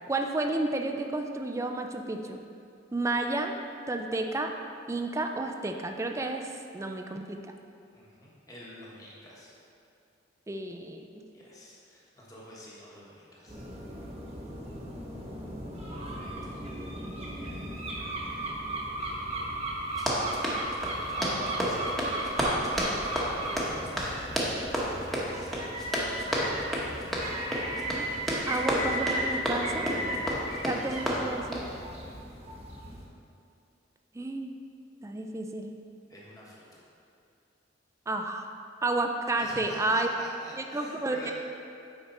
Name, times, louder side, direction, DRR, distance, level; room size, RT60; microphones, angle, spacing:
voice 1, 0.1-2.4 2.9-3.6 3.9-4.5 4.9-6.4 6.7-7.4 10.5-11.1 27.9-28.0 28.5-29.9 30.6-31.6 34.1-34.5 35.0-35.7 38.1-38.5 38.8-40.1 40.6-41.3, right 2 dB, 15° right, 4 dB, 0.3 m, -31 dB
voice 2, 7.9-9.5 11.3-13.6 16.2-16.3 16.8-17.0 17.3-17.7 20.6-22.8 23.1-24.3 25.0-25.5 36.1-36.9 39.4-41.3, equal, 20° left, -5 dB, 1.4 m, -46 dB
sound 1, 13.5-33.1, right 1 dB, 35° right, 1.1 m, -36 dB
Run, 19.9-31.7, equal, ahead, 1.0 m, -31 dB
8.6 x 5.1 x 4.1 m, 2.5 s
head